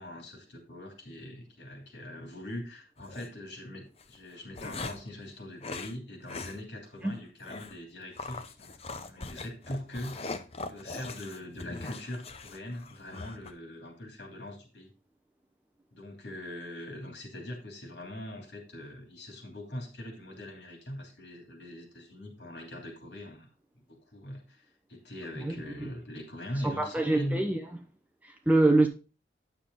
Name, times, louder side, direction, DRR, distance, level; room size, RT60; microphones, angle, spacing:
voice 1, 0.0-10.3 10.7-14.9 15.9-23.5 23.9-27.4, left 1 dB, 75° left, 2.9 m, -42 dB
sound 1, 3.0-3.3 4.0-5.1 5.6-5.9 6.3-6.6 6.9-7.0 7.4-7.8 8.2-13.5, left 3 dB, 35° left, 0.7 m, -41 dB
voice 2, 26.6-27.6 28.2-28.9, right 2 dB, 10° right, 0.9 m, -24 dB
9.3 x 6.9 x 3.7 m
head